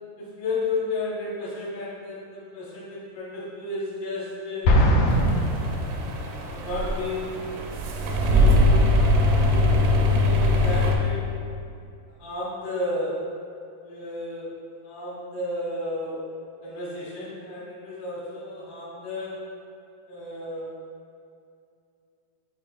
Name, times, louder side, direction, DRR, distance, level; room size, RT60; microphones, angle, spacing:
voice 1, 0.2-4.8 6.4-7.6 8.3-8.9 9.4-11.3 12.2-13.3 13.8-14.5 14.8-16.2 16.6-19.4 20.1-20.7, left 2 dB, 65° left, -7 dB, 1.4 m, -32 dB
Explosion, 4.6-6.5, equal, 90° left, 1.8 m, -21 dB
sound 1, 5.1-11.0, left 1 dB, 80° right, 2.5 m, -21 dB
9.7 x 4.6 x 2.4 m, 2.5 s
omnidirectional pair, 4.8 m